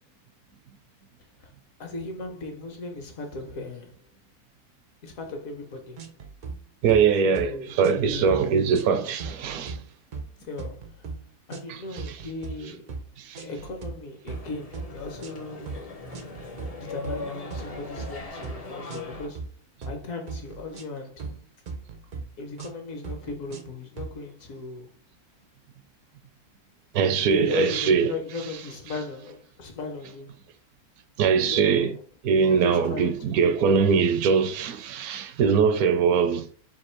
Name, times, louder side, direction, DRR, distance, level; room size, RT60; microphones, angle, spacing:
voice 1, 1.8-4.0 5.0-6.0 7.2-7.8 8.0-8.4 10.4-11.1 11.5-13.0 13.4-15.9 16.8-19.5 19.9-21.3 22.4-24.9 27.2-30.3 31.5-32.0 32.5-33.9, left 3 dB, 65° left, 1.3 m, -37 dB
sound 1, 6.0-6.6 6.9-7.1 7.3-7.5 7.8-8.4 8.7-8.9 9.2-9.8 10.1-10.3 10.6-11.2 11.5-11.7 12.0-12.5 12.9-13.1 13.3-13.9 14.3-14.5 14.7-15.3 15.7-15.8 16.1-16.8 17.0-18.1 18.4-18.6 18.9-19.5 19.8-20.0 20.3-21.4 21.7-22.3 22.6-22.8 23.0-23.7 24.0-24.1, right 4 dB, 60° right, 0.5 m, -37 dB
voice 2, 6.8-9.8 11.7-11.8 12.1-12.2 13.2-13.4 26.9-28.1 31.2-32.0 32.2-36.5, right 6 dB, 75° right, 1.0 m, -22 dB
sound 2, 14.3-19.3, left 3 dB, 40° left, 0.5 m, -39 dB
3.6 x 2.7 x 4.3 m
omnidirectional pair, 1.6 m